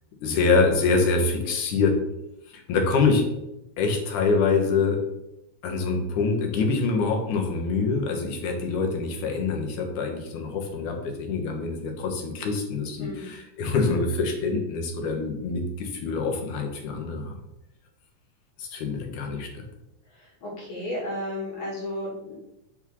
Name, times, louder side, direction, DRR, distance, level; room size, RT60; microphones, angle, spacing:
voice 1, 0.2-2.0 2.5-3.2 3.8-5.0 5.6-17.4 18.6-19.6, left 4 dB, 80° left, 2 dB, 2.7 m, -25 dB
voice 2, 20.4-22.4, left 1 dB, 60° left, -4 dB, 3.5 m, -33 dB
6.4 x 3.6 x 6.1 m, 0.87 s
omnidirectional pair, 3.5 m